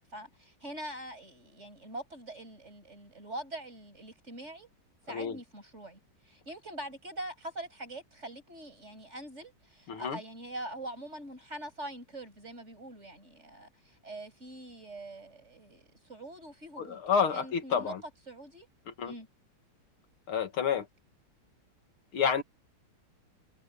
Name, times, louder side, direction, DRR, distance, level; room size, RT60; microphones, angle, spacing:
voice 1, 0.0-4.7 5.1-6.0 6.2-17.0 17.3-17.9 18.3-18.7 19.0-19.3, right 1 dB, 30° right, 7.4 m, -43 dB
voice 2, 9.9-10.2 16.8-18.0 19.0-19.1 20.3-20.9 22.1-22.4, left 7 dB, 90° left, 2.7 m, -29 dB
omnidirectional pair, 2.3 m